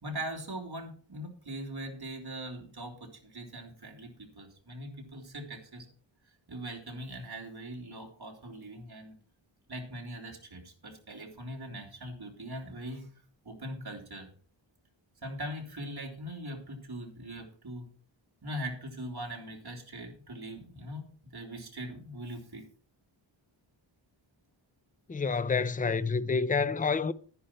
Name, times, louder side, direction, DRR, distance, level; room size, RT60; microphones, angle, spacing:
voice 1, 0.0-5.9 6.5-9.1 9.7-13.1 13.4-14.3 15.2-17.9 18.4-22.6, right 1 dB, 50° right, 3.1 m, -41 dB
voice 2, 25.1-27.1, left 5 dB, 20° left, 0.5 m, -28 dB
11.5 x 10.0 x 4.4 m
wide cardioid pair, 90°, 48 cm